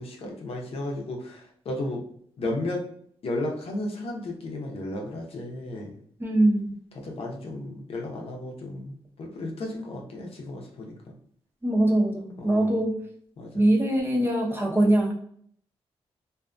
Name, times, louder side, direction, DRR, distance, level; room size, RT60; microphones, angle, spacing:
voice 1, 0.0-2.0 2.4-2.8 3.2-6.0 7.0-10.9 12.4-12.8 13.4-13.6, left 1 dB, 65° left, 0 dB, 0.7 m, -34 dB
voice 2, 6.2-6.7 11.6-12.9 13.5-15.1, right 1 dB, 20° right, -1 dB, 0.8 m, -22 dB
2.6 x 2.4 x 2.3 m, 0.62 s
cardioid pair, 70°, 11 cm